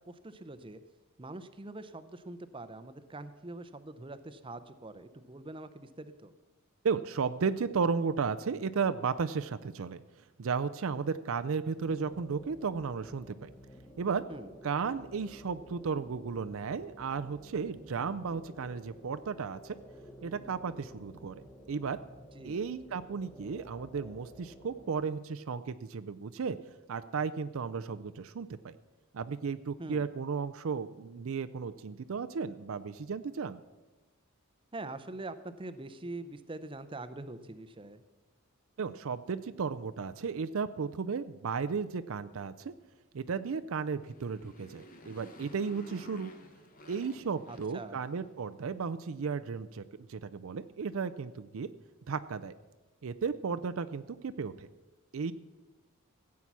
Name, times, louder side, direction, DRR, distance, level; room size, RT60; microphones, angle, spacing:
voice 1, 0.1-0.8 1.2-6.3 14.3-14.5 22.3-22.6 29.8-30.1 34.7-38.0 47.5-48.0, right 2 dB, 25° right, 11 dB, 0.6 m, -44 dB
voice 2, 6.8-10.0 10.4-13.5 14.0-14.2 14.6-19.8 20.2-22.0 22.4-26.6 26.9-28.7 29.1-33.6 38.8-42.7 43.1-46.3 46.9-49.8 50.1-51.7 52.1-52.5 53.0-54.7 55.1-55.3, right 5 dB, 65° right, 11 dB, 0.5 m, -34 dB
sound 1, 11.8-25.0, equal, 5° left, 1.1 m, -53 dB
Motorcycle, 43.9-48.5, left 1 dB, 40° left, 1.2 m, -52 dB
15.5 x 8.4 x 6.1 m, 1.1 s
head